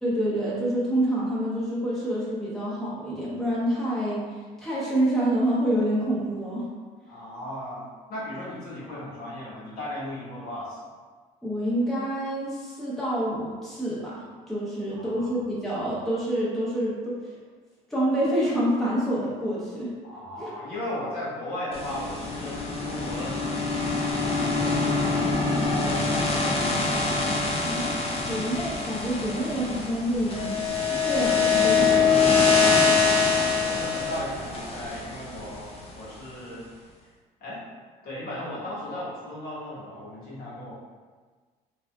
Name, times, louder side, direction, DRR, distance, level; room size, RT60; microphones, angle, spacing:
voice 1, 0.0-6.7 11.4-17.2 17.9-19.9 20.4-20.5 27.6-27.9 28.2-32.6, right 1 dB, ahead, -8 dB, 0.7 m, -27 dB
voice 2, 7.1-10.8 14.9-15.3 20.0-24.2 24.6-27.2 33.0-36.6 37.4-37.6 38.0-40.7, left 1 dB, 65° left, -7 dB, 1.2 m, -36 dB
sound 1, 21.7-35.9, left 4 dB, 35° left, 0.6 m, -24 dB
3.4 x 2.4 x 2.3 m, 1.5 s
cardioid pair, 110°, 17 cm